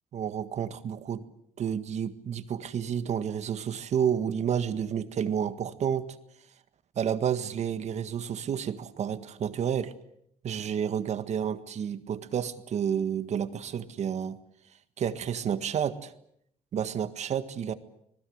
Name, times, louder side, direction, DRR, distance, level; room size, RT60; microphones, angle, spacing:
voice 1, 0.1-1.2 1.6-6.2 6.9-9.9 10.4-14.4 15.0-16.1 16.7-17.7, right 8 dB, 50° right, 11 dB, 1.7 m, -30 dB
27.0 x 20.0 x 8.0 m, 0.73 s
cardioid pair, 130°, 15 cm